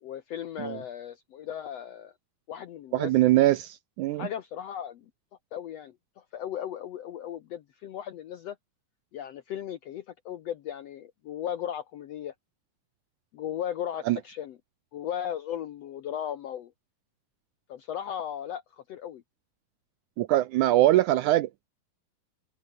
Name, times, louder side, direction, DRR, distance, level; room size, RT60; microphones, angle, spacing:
voice 1, 0.0-2.1 2.5-3.1 4.1-5.0 5.5-8.6 9.1-12.3 13.3-14.6 14.9-16.7 17.7-19.2, left 10 dB, 70° left, 1.5 m, -36 dB
voice 2, 2.9-4.3 14.1-14.2 20.2-21.7, right 15 dB, 80° right, 1.8 m, -23 dB
omnidirectional pair, 4.1 m